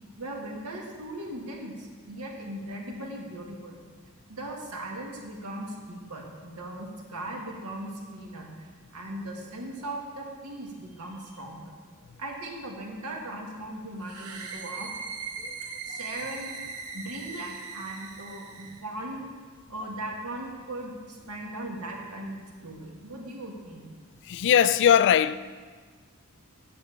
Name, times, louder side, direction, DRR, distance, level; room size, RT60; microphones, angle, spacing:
voice 1, 0.2-3.8 4.3-8.7 8.9-11.8 12.2-14.9 15.8-16.6 16.9-19.3 19.7-23.9, right 1 dB, 90° right, 1.8 m, -38 dB
sound 1, 14.0-18.8, right 4 dB, 70° right, 0.9 m, -39 dB
voice 2, 24.2-25.4, left 9 dB, 55° left, 0.3 m, -20 dB
9.4 x 5.1 x 7.4 m
head